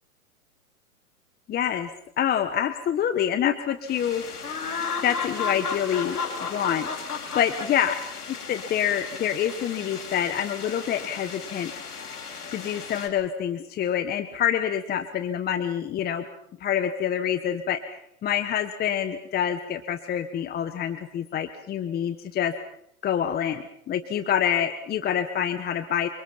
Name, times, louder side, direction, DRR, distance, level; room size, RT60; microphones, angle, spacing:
voice 1, 1.5-1.9 2.2-4.2 5.0-6.2 6.5-6.9 7.3-7.9 8.5-11.7 12.5-16.2 16.6-22.5 23.0-26.1, left 9 dB, 20° left, 10 dB, 1.4 m, -26 dB
sound 1, 3.9-13.1, left 5 dB, 85° left, 7.5 m, -34 dB
29.0 x 26.0 x 5.8 m, 0.76 s
hypercardioid pair, 120°, 45 cm